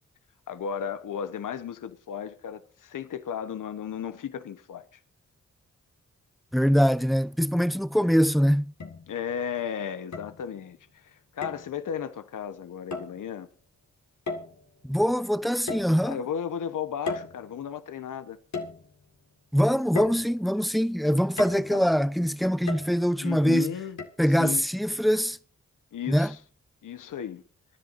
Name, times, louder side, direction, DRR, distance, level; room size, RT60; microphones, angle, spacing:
voice 1, 0.5-4.9 9.1-13.5 16.0-18.4 21.5-21.9 23.2-24.0 24.4-24.6 25.9-26.4 26.8-27.4, left 8 dB, 85° left, 1.1 m, -35 dB
voice 2, 6.5-8.6 14.8-16.2 19.5-23.7 24.2-25.4 26.1-26.3, equal, ahead, 0.7 m, -23 dB
sound 1, 7.7-7.8 8.8-9.4 10.1-10.7 11.4-11.7 12.9-13.2 14.3-14.8 15.7-16.4 17.1-17.9 18.5-19.2 20.0-20.7 21.4-21.9 22.7-23.3 24.0-24.1, left 3 dB, 65° left, 2.0 m, -36 dB
25.5 x 10.5 x 2.6 m
supercardioid pair, 40°, 31 cm